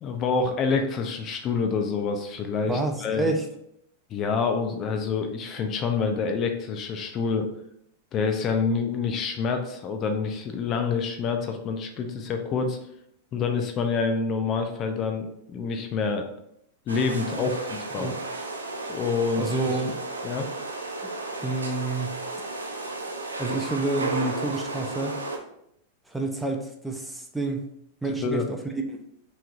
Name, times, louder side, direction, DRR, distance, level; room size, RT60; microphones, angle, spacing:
voice 1, 0.0-3.3 4.1-7.5 8.1-12.8 13.3-16.3 16.9-18.1 18.9-19.4 20.2-20.5 28.1-28.5, left 5 dB, 35° left, 5 dB, 0.6 m, -27 dB
voice 2, 2.7-3.5 17.3-17.6 18.0-18.2 19.4-20.0 21.4-22.2 23.4-25.1 26.1-27.7 28.0-28.6 28.9-29.0, right 2 dB, 5° right, 2 dB, 0.6 m, -29 dB
sound 1, 16.9-25.4, right 2 dB, 85° right, 0.7 m, -33 dB
5.7 x 3.2 x 2.5 m, 0.74 s
figure-of-eight pair, 95°, 0 cm